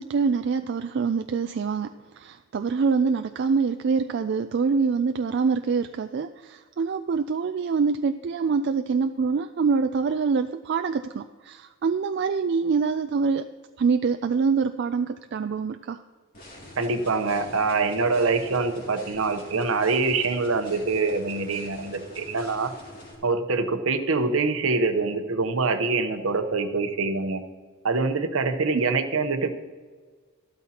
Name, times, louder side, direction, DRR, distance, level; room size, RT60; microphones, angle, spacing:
voice 1, 0.0-1.9 2.2-13.4 13.8-16.0, right 5 dB, 50° right, 8 dB, 0.3 m, -25 dB
sound 1, 16.3-23.1, equal, 40° left, 2.7 m, -45 dB
voice 2, 16.8-22.7 23.2-27.4 27.8-29.6, right 3 dB, 70° right, 8 dB, 0.8 m, -25 dB
13.5 x 12.5 x 2.9 m, 1.5 s
head